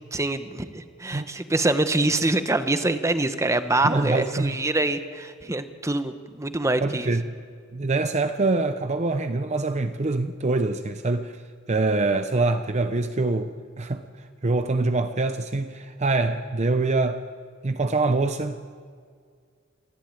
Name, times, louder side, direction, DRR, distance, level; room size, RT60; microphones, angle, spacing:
voice 1, 0.1-7.1, right 2 dB, 15° right, 10 dB, 0.9 m, -25 dB
voice 2, 3.8-4.6 6.8-7.2 7.7-11.4 11.7-14.0 14.4-17.2 17.6-18.6, right 3 dB, 35° right, 9 dB, 0.6 m, -24 dB
27.5 x 11.0 x 8.9 m, 2.1 s
head